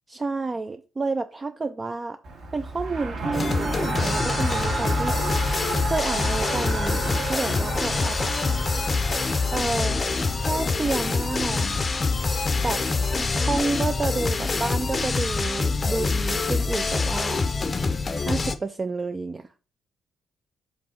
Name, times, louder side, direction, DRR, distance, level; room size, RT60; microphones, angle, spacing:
voice 1, 0.1-2.2 2.5-5.2 5.8-8.3 9.5-10.0 10.4-11.9 12.6-12.8 13.4-17.4 18.2-19.5, right 3 dB, 30° right, 0.4 m, -30 dB
Race car auto racing, 2.2-13.6, right 3 dB, 70° right, 1.7 m, -33 dB
sound 1, 3.3-18.6, left 4 dB, 30° left, 0.6 m, -25 dB
5.2 x 3.5 x 5.5 m
cardioid pair, 90°, 0 cm